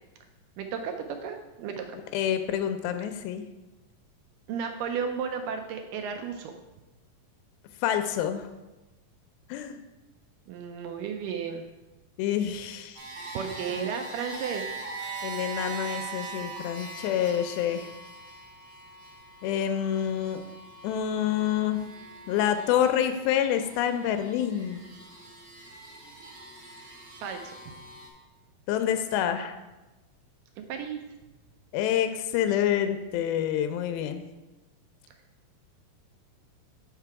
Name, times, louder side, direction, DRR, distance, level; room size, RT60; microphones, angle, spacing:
voice 1, 0.6-2.0 4.5-6.5 10.5-11.7 13.3-14.7 27.2-27.5 30.7-31.0, right 6 dB, 80° right, 5 dB, 2.0 m, -33 dB
voice 2, 2.1-3.4 7.8-8.5 9.5-9.8 12.2-13.0 13.8-13.9 15.2-17.9 19.4-20.4 20.8-21.8 22.3-24.8 28.7-29.6 31.7-34.2, left 10 dB, 85° left, 8 dB, 2.4 m, -27 dB
sound 1, 12.9-28.1, right 4 dB, 55° right, 1.2 m, -42 dB
5.9 x 5.7 x 4.6 m, 1.1 s
omnidirectional pair, 4.2 m